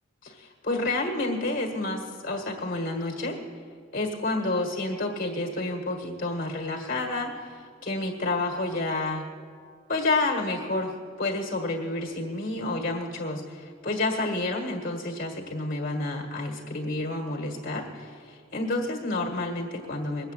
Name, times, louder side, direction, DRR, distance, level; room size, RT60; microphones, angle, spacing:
voice 1, 0.2-3.4 3.9-7.3 7.8-9.3 9.9-10.9 11.2-20.3, left 2 dB, 40° left, 2 dB, 1.6 m, -29 dB
21.0 x 7.4 x 9.0 m, 2.2 s
head